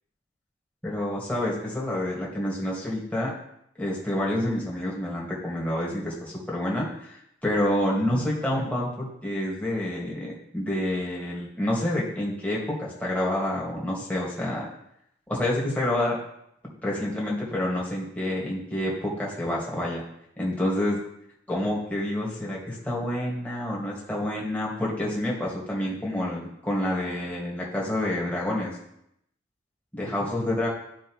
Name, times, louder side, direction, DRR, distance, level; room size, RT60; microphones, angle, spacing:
voice 1, 0.8-3.3 3.8-14.7 15.3-16.2 16.8-20.0 20.4-21.0 21.5-28.7 29.9-30.7, left 1 dB, 10° left, -5 dB, 1.7 m, -28 dB
12.0 x 4.5 x 3.1 m, 0.77 s
head